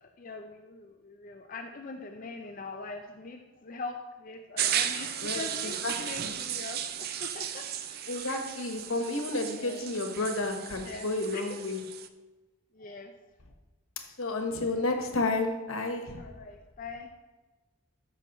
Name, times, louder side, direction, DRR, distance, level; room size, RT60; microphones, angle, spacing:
voice 1, 0.0-8.1 9.5-9.8 10.8-11.6 12.7-13.1 16.2-17.1, left 3 dB, 40° left, 4 dB, 0.4 m, -42 dB
sound 1, 4.6-12.1, right 9 dB, 45° right, 0.4 m, -35 dB
voice 2, 5.2-5.9 6.2-6.3 8.1-11.8 14.2-16.2, left 2 dB, 75° left, 4 dB, 1.2 m, -31 dB
13.0 x 5.7 x 3.0 m, 1.2 s
head